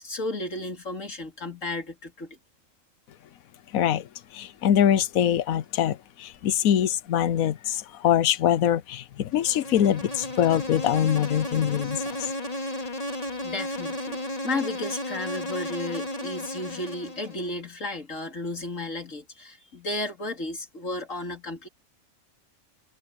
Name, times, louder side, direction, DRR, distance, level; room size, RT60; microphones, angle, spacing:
voice 1, 0.0-2.4 6.3-6.4 12.4-21.7, left 2 dB, 60° left, 3.3 m, -34 dB
voice 2, 3.7-4.1 4.3-12.0, left 10 dB, 80° left, 1.2 m, -23 dB
Insect, 9.3-17.5, left 1 dB, 25° left, 2.3 m, -33 dB
omnidirectional pair, 1.5 m